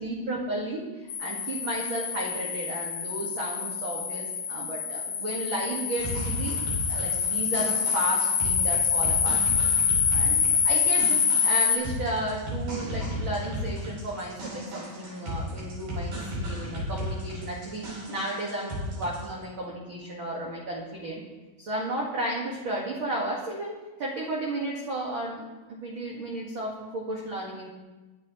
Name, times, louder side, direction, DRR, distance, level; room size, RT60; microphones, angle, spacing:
voice 1, 0.0-6.6 6.9-9.4 10.1-10.4 10.6-21.2 21.6-27.7, right 1 dB, 40° right, -4 dB, 2.1 m, -33 dB
sound 1, 1.1-11.8, left 6 dB, 85° left, 3.4 m, -26 dB
sound 2, 6.0-19.3, equal, 75° right, 7.1 m, -35 dB
24.0 x 11.0 x 3.2 m, 1.2 s
omnidirectional pair, 4.3 m